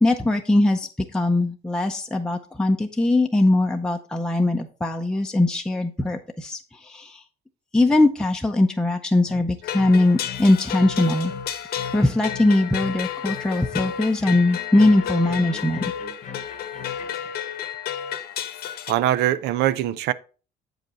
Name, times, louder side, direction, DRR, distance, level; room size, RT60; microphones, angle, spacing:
voice 1, 0.0-7.2 7.7-11.3 11.9-15.8, left 2 dB, 5° left, 0.6 m, -21 dB
sound 1, 9.3-17.3, left 7 dB, 45° left, 0.9 m, -40 dB
sound 2, 9.6-18.9, left 9 dB, 70° left, 1.0 m, -31 dB
voice 2, 18.9-20.1, right 12 dB, 80° right, 0.5 m, -22 dB
7.8 x 5.2 x 4.1 m
cardioid pair, 110°, 17 cm